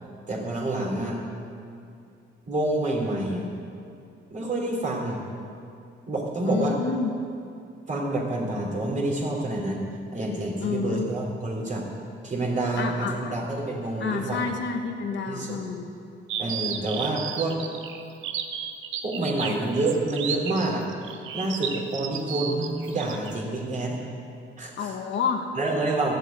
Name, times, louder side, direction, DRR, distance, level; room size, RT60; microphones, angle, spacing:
voice 1, 0.3-1.2 2.5-3.5 4.3-5.2 6.1-6.8 7.9-9.8 10.1-11.9 12.2-14.4 15.3-15.6 16.4-17.6 19.0-20.9 21.3-24.0 24.6-24.9 25.6-26.1, right 2 dB, 40° right, -2 dB, 3.5 m, -28 dB
voice 2, 6.4-7.1 10.6-11.1 12.8-13.5 14.0-15.9 24.8-25.5, left 5 dB, 65° left, 4 dB, 1.3 m, -29 dB
sound 1, 16.3-23.3, right 8 dB, 80° right, 0.9 m, -33 dB
13.0 x 7.8 x 8.5 m, 2.5 s
cardioid pair, 90°, 20 cm